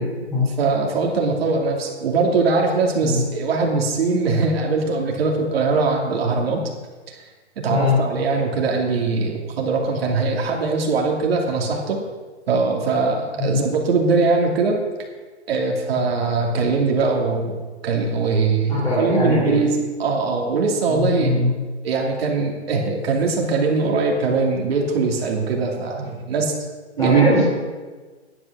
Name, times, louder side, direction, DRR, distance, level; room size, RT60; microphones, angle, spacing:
voice 1, 0.0-0.5 3.0-3.2 7.7-8.0 13.4-13.5 18.7-19.6 20.9-21.5 27.0-27.4, left 2 dB, 10° left, -9 dB, 3.8 m, -22 dB
voice 2, 0.6-6.6 7.1-7.2 7.6-12.0 12.5-14.8 15.5-17.6 17.8-21.3 21.8-26.5 27.0-27.4, right 4 dB, 60° right, 0 dB, 2.8 m, -21 dB
11.0 x 9.4 x 6.7 m, 1.3 s
hypercardioid pair, 145°, 35 cm